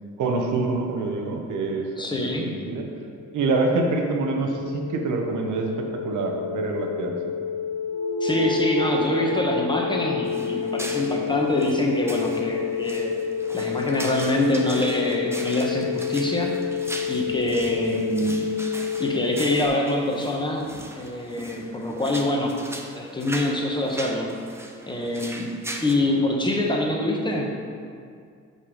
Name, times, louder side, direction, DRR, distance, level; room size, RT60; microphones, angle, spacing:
voice 1, 0.2-1.9 2.2-2.9 3.3-7.3, right 3 dB, 80° right, 2 dB, 1.0 m, -26 dB
voice 2, 2.0-2.6 8.2-13.1 13.5-16.6 17.1-18.4 18.7-22.6 22.9-24.3 24.9-25.6 25.8-27.5, left 1 dB, 15° left, 0 dB, 1.2 m, -25 dB
sound 1, 2.6-19.7, left 8 dB, 85° left, 0.7 m, -30 dB
sound 2, 7.9-12.7, equal, 50° left, 1.9 m, -32 dB
sound 3, 10.3-25.9, right 1 dB, 10° right, 0.7 m, -39 dB
5.9 x 5.4 x 5.0 m, 2.2 s
cardioid pair, 90°, 30 cm